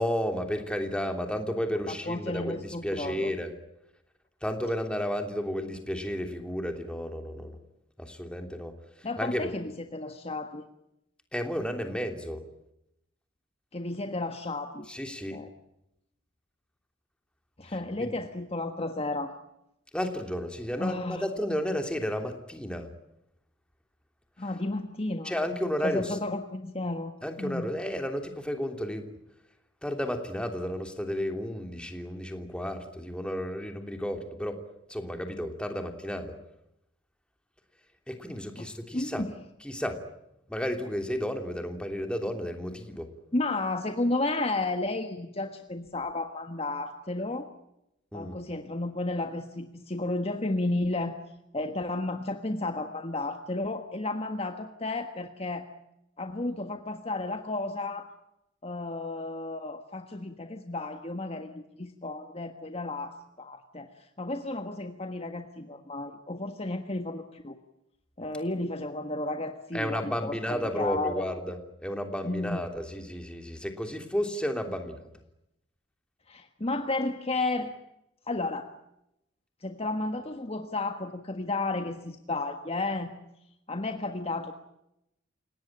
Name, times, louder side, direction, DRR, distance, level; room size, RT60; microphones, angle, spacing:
voice 1, 0.0-3.5 4.4-7.6 8.0-8.7 9.0-9.5 11.3-12.4 14.9-15.4 18.0-18.2 19.9-22.9 25.2-26.2 27.2-29.1 29.8-34.6 34.9-36.3 38.1-39.2 39.6-40.0 40.5-43.1 48.1-48.4 69.7-71.6 71.8-75.0, equal, 5° left, 5 dB, 3.1 m, -32 dB
voice 2, 1.8-3.3 9.0-10.6 13.7-14.8 15.3-15.5 17.6-19.3 20.8-21.2 24.4-25.3 25.8-27.7 38.6-38.7 38.9-39.3 43.3-47.5 48.1-51.2 51.5-55.6 56.2-58.1 58.6-63.9 64.2-67.6 68.2-71.3 72.2-72.6 76.3-77.7 78.3-78.7 79.6-83.1 83.7-84.5, left 2 dB, 30° left, 6 dB, 1.5 m, -32 dB
29.0 x 18.0 x 8.8 m, 0.85 s
head